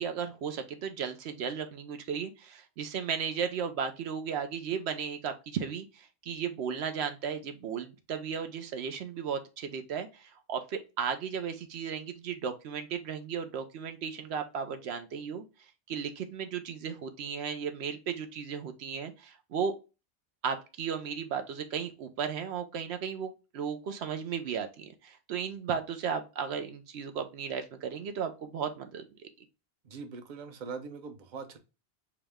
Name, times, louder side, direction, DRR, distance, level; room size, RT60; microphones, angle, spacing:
voice 1, 0.0-15.4 15.9-19.7 20.4-29.0, right 7 dB, 80° right, 0.8 m, -35 dB
voice 2, 29.8-31.6, right 5 dB, 50° right, 0.7 m, -42 dB
4.8 x 2.1 x 3.4 m
omnidirectional pair, 1.1 m